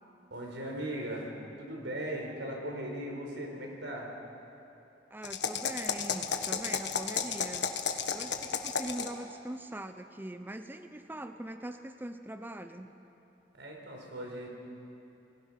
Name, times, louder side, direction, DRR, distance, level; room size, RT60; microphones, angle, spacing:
voice 1, 0.3-1.3 1.6-4.1 13.5-14.5, right 1 dB, 85° right, 0 dB, 4.9 m, -38 dB
voice 2, 5.1-7.7 8.1-12.9, right 1 dB, 10° right, 8 dB, 0.7 m, -42 dB
sound 1, 5.2-9.2, left 6 dB, 70° left, 1.4 m, -33 dB
28.5 x 20.0 x 6.0 m, 2.9 s
head